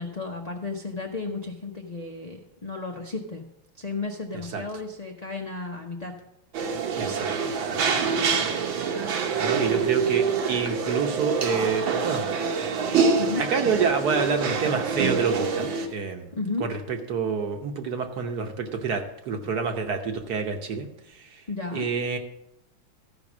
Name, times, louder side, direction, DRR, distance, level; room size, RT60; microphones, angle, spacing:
voice 1, 0.0-3.4 3.8-6.1 13.1-13.4 16.3-16.7 21.5-21.9, left 3 dB, 80° left, 1 dB, 0.3 m, -33 dB
sound 1, 6.5-15.9, right 5 dB, 75° right, 1.8 m, -26 dB
voice 2, 7.0-7.8 9.4-12.2 13.4-16.3 16.6-20.9 21.2-21.3 21.7-22.2, right 5 dB, 60° right, 5 dB, 1.3 m, -28 dB
13.5 x 5.3 x 6.1 m, 0.82 s
omnidirectional pair, 2.2 m